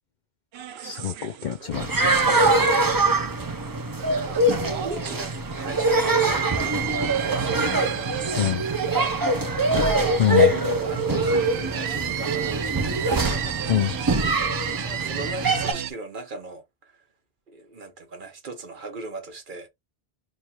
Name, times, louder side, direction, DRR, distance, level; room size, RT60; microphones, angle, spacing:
sound 1, 0.5-15.9, right 10 dB, 75° right, 0.8 m, -34 dB
voice 1, 0.8-2.4 8.4-8.6 10.2-10.5 13.7-13.9, left 10 dB, 55° left, 0.6 m, -25 dB
sound 2, 1.7-15.7, right 2 dB, 30° right, 0.4 m, -23 dB
voice 2, 3.0-8.2 8.9-10.0 10.3-13.5 15.0-17.0 17.5-19.7, right 3 dB, 55° right, 1.0 m, -39 dB
3.2 x 2.3 x 4.2 m
omnidirectional pair, 1.1 m